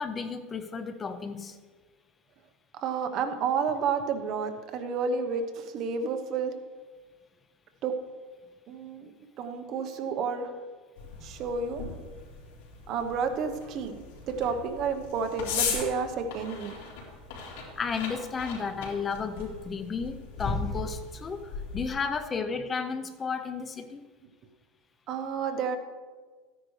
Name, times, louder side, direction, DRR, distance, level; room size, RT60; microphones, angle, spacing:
voice 1, 0.0-1.6 17.8-24.0, left 5 dB, 20° left, 9 dB, 0.7 m, -33 dB
voice 2, 2.7-6.6 7.8-8.0 8.7-9.1 9.4-10.5 11.2-11.8 12.9-16.7 25.1-25.8, right 5 dB, 45° right, 7 dB, 1.0 m, -30 dB
sound 1, 11.0-21.9, left 5 dB, 80° left, 3.5 m, -37 dB
13.5 x 10.0 x 3.3 m, 1.5 s
supercardioid pair, 145°, 0 cm